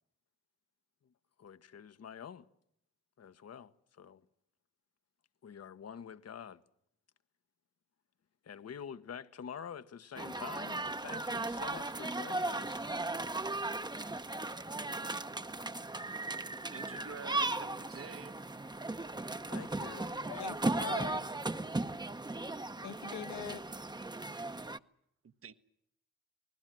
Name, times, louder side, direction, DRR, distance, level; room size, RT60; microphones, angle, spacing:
voice 1, 1.4-2.4 3.2-3.7 4.0-4.2 5.4-6.6 8.4-12.8 19.5-20.3, left 7 dB, 60° left, 1.3 m, -47 dB
sound 1, 10.2-24.8, right 2 dB, 15° right, 0.9 m, -37 dB
voice 2, 16.7-18.3 25.2-25.5, right 6 dB, 50° right, 1.2 m, -47 dB
voice 3, 20.2-21.3 21.7-22.0 22.8-23.6, left 10 dB, 75° left, 1.0 m, -43 dB
28.5 x 20.0 x 7.7 m
supercardioid pair, 50°, 29 cm